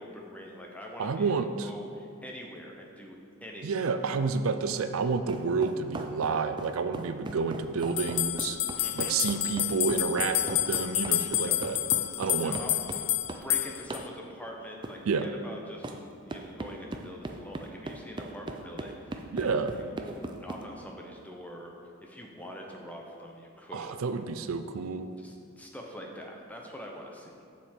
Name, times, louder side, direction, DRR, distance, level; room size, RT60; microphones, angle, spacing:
voice 1, 0.0-1.4 1.6-3.7 8.7-9.2 11.4-11.6 12.4-12.7 13.0-13.1 13.4-19.8 20.1-21.7 22.0-24.0 25.2-27.4, equal, 5° left, 0 dB, 0.8 m, -44 dB
voice 2, 1.0-1.7 3.6-8.6 9.0-11.8 12.2-12.6 15.1-15.3 19.3-19.7 23.7-25.1, right 5 dB, 85° right, 9 dB, 0.4 m, -29 dB
sound 1, 5.3-13.5 13.9-14.1 14.8-15.0 15.8-16.0 16.3-20.6, right 2 dB, 20° right, 0.4 m, -39 dB
sound 2, 8.0-14.0, left 15 dB, 60° left, 0.4 m, -29 dB
7.3 x 7.0 x 4.4 m, 2.4 s
head